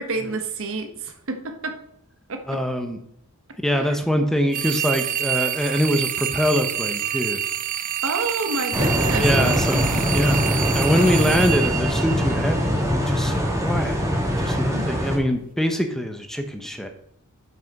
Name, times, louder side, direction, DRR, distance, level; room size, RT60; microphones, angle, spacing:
voice 1, 0.0-1.8 2.3-2.6 3.7-4.0 8.0-10.3 14.7-14.9, right 3 dB, 65° right, 6 dB, 1.2 m, -29 dB
voice 2, 2.5-3.0 3.6-7.4 9.2-14.0 14.4-16.9, equal, ahead, 5 dB, 0.8 m, -24 dB
sound 1, 4.5-12.7, right 11 dB, 40° right, 0.4 m, -27 dB
sound 2, 8.7-15.2, equal, 15° right, 1.9 m, -22 dB
8.3 x 5.9 x 5.3 m, 0.71 s
head